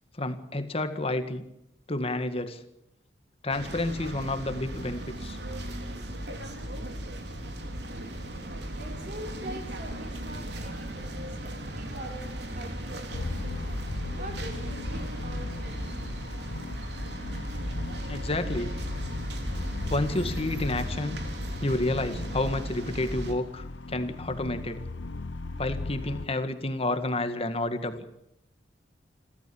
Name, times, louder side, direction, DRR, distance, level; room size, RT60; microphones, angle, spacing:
voice 1, 0.2-1.5 1.9-2.6 3.4-5.4 18.1-18.7 19.9-21.2 21.6-24.8 25.6-28.0, left 2 dB, 35° left, 1.9 m, -30 dB
sound 1, 3.5-23.3, right 1 dB, 65° right, 3.4 m, -36 dB
voice 2, 8.7-15.9, right 1 dB, 45° right, 4.9 m, -44 dB
sound 2, 13.1-26.3, left 2 dB, 90° left, 0.9 m, -37 dB
29.5 x 13.0 x 8.5 m
head